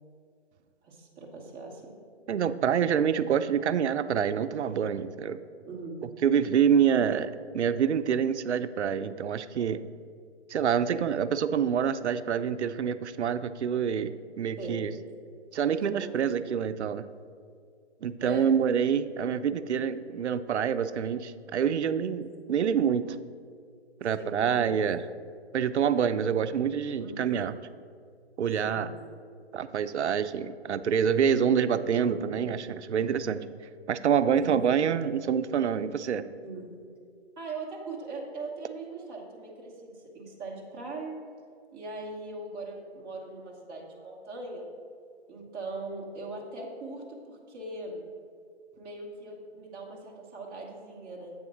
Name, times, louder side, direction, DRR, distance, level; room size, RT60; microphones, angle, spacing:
voice 1, 0.8-2.0 5.6-6.0 14.6-14.8 15.7-16.4 18.2-18.5 21.9-22.2 24.2-24.8 27.0-27.3 28.6-28.9 32.0-32.3 34.4-34.7 36.4-36.7 37.4-41.1 41.7-44.7 45.3-48.0 48.8-51.3, right 3 dB, 15° right, -4 dB, 0.9 m, -40 dB
voice 2, 2.3-5.4 6.2-9.8 10.5-14.9 15.5-17.0 18.0-23.2 24.0-25.0 25.5-27.5 28.4-28.9 29.5-33.5 33.9-36.3, right 8 dB, 85° right, 12 dB, 0.5 m, -26 dB
7.9 x 3.7 x 6.0 m, 2.2 s
hypercardioid pair, 145°, 33 cm